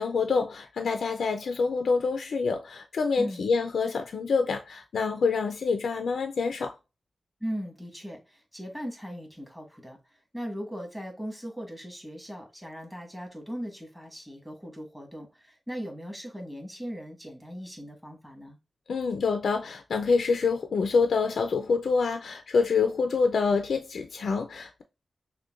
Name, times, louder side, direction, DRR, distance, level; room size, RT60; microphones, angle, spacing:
voice 1, 0.0-6.7 18.9-24.8, left 4 dB, 90° left, 0.4 m, -26 dB
voice 2, 7.4-10.0 10.3-18.6, equal, 5° right, 1.4 m, -38 dB
6.4 x 2.2 x 2.4 m
wide cardioid pair, 120°, 0 cm